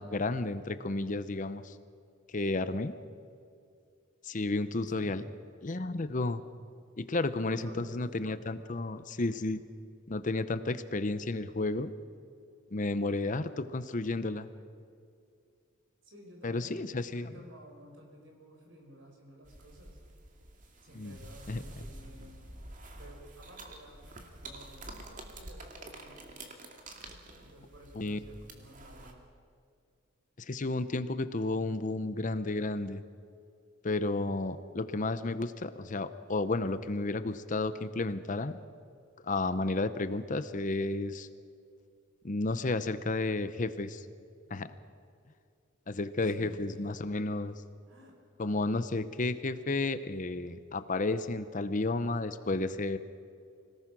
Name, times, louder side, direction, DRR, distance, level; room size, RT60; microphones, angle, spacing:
voice 1, 0.0-1.7 2.3-2.9 4.2-5.2 5.6-6.4 7.0-9.6 10.1-11.9 12.7-14.5 16.4-17.3 20.9-21.2 21.5-21.6 28.0-28.2 30.4-33.0 33.8-38.6 39.2-41.3 42.2-44.1 44.5-44.7 45.9-47.5 48.4-53.0, left 2 dB, 40° left, 13 dB, 0.7 m, -32 dB
voice 2, 4.9-5.3 7.3-8.4 9.3-9.6 16.0-20.0 20.8-22.6 22.9-26.3 27.3-29.2 44.4-44.8 46.2-47.2 47.9-48.2, equal, 65° right, 2 dB, 5.0 m, -54 dB
sound 1, 19.4-29.1, right 2 dB, 40° right, 2.3 m, -48 dB
25.5 x 18.0 x 6.1 m, 2.3 s
head